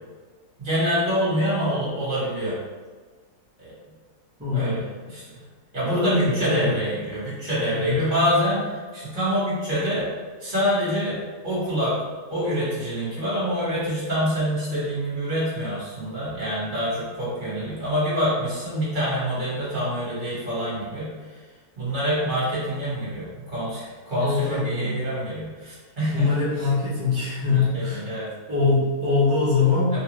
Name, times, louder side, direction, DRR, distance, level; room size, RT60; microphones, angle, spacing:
voice 1, 0.6-2.6 3.6-3.7 4.5-5.4 5.7-10.1 10.4-11.2 11.4-11.9 12.3-21.4 21.8-26.7 27.4-28.3 29.9-30.0, equal, 35° right, -9 dB, 1.3 m, -26 dB
voice 2, 4.4-4.8 5.8-6.7 7.7-8.0 24.2-24.9 26.1-28.0 28.5-30.0, left 4 dB, 15° right, -9 dB, 0.4 m, -23 dB
3.1 x 2.3 x 3.0 m, 1.4 s
omnidirectional pair, 1.6 m